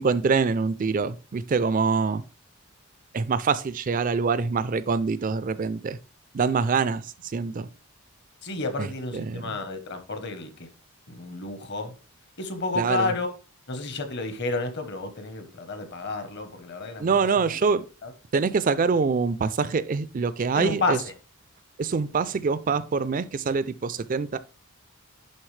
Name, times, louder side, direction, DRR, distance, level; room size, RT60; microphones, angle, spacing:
voice 1, 0.0-2.2 3.1-6.0 6.3-7.0 7.3-7.7 8.8-8.9 9.1-9.4 12.8-13.1 17.0-17.8 18.3-21.0 21.8-24.4, right 5 dB, 35° right, 0.3 m, -25 dB
voice 2, 8.4-10.7 11.1-11.9 12.4-13.3 13.7-17.6 18.0-18.1 20.5-21.1, left 3 dB, 50° left, 1.0 m, -31 dB
11.0 x 3.8 x 3.2 m
head